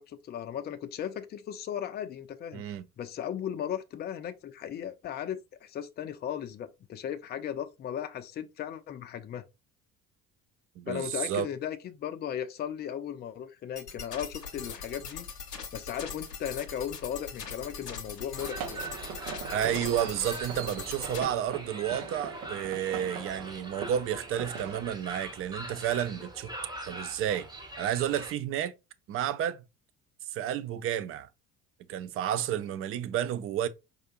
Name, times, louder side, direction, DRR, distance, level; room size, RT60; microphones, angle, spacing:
voice 1, 0.0-2.6 3.0-9.4 10.9-15.3 15.7-18.9, left 9 dB, 25° left, 0.5 m, -36 dB
voice 2, 2.5-2.8 10.8-11.5 19.5-26.5 26.9-27.5 27.8-28.7 29.1-29.6 30.3-31.3 31.9-33.7, right 10 dB, 30° right, 0.4 m, -31 dB
sound 1, 13.8-21.2, left 6 dB, 90° left, 0.7 m, -41 dB
sound 2, 18.4-28.3, right 1 dB, 10° right, 0.9 m, -43 dB
sound 3, 18.4-24.8, right 7 dB, 70° right, 1.1 m, -41 dB
4.6 x 2.4 x 2.9 m
figure-of-eight pair, 60°, 46 cm